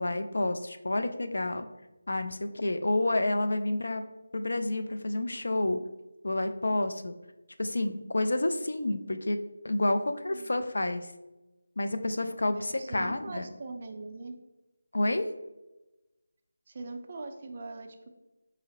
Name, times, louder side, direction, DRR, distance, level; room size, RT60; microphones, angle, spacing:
voice 1, 0.0-1.7 2.1-4.0 4.3-5.8 6.2-7.1 7.6-9.4 9.6-11.1 11.8-13.5 14.9-15.3, left 2 dB, 75° left, 8 dB, 0.4 m, -29 dB
voice 2, 12.5-14.3 16.7-18.1, right 3 dB, 30° right, 5 dB, 0.3 m, -41 dB
4.8 x 2.7 x 2.9 m, 1.0 s
figure-of-eight pair, 175°, 0 cm